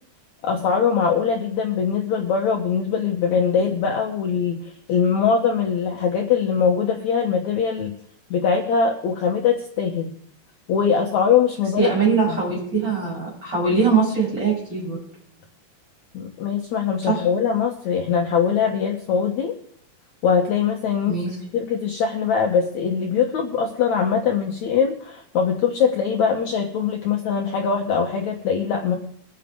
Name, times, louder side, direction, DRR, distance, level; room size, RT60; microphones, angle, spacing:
voice 1, 0.4-4.6 4.9-7.9 8.3-10.1 10.7-11.9 12.3-12.4 16.1-19.5 20.2-21.2 21.5-29.0, left 6 dB, 80° left, 1 dB, 1.6 m, -22 dB
voice 2, 11.8-15.0 17.0-17.2 21.1-21.4, right 5 dB, 25° right, -4 dB, 8.5 m, -22 dB
21.5 x 7.5 x 5.2 m, 0.66 s
omnidirectional pair, 4.8 m